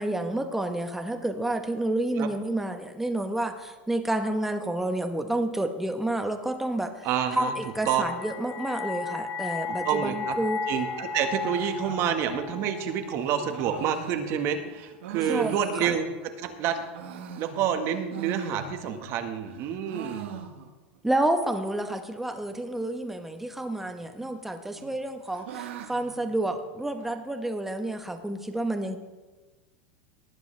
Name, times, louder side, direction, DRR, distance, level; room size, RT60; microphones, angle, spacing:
voice 1, 0.0-7.1 7.3-10.6 15.3-15.9 21.0-29.0, right 1 dB, 5° right, 6 dB, 1.1 m, -29 dB
voice 2, 7.0-7.5 7.9-8.0 9.7-10.4 10.7-16.1 16.4-16.8 17.4-20.3, right 8 dB, 45° right, 6 dB, 1.6 m, -28 dB
sound 1, 7.2-14.3, left 4 dB, 35° left, 5.1 m, -35 dB
sound 2, 11.4-16.4 16.8-19.1 19.4-21.0 21.2-21.3 21.6-21.7 22.3-22.7 23.8-24.4 24.7-27.2, right 8 dB, 85° right, 1.4 m, -42 dB
18.5 x 10.0 x 3.4 m, 1.2 s
supercardioid pair, 145°, 6 cm